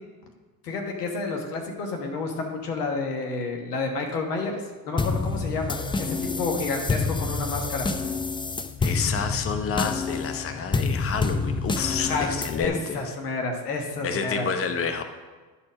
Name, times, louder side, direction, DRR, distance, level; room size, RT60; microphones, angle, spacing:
voice 1, 0.6-4.5 4.9-7.9 12.0-14.5, left 3 dB, 80° left, 3 dB, 1.4 m, -30 dB
sound 1, 5.0-12.7, left 4 dB, 10° left, 0.5 m, -28 dB
voice 2, 8.8-13.1 14.0-15.0, left 6 dB, 30° left, 7 dB, 0.9 m, -29 dB
11.5 x 4.4 x 6.2 m, 1.4 s
hypercardioid pair, 60°, 46 cm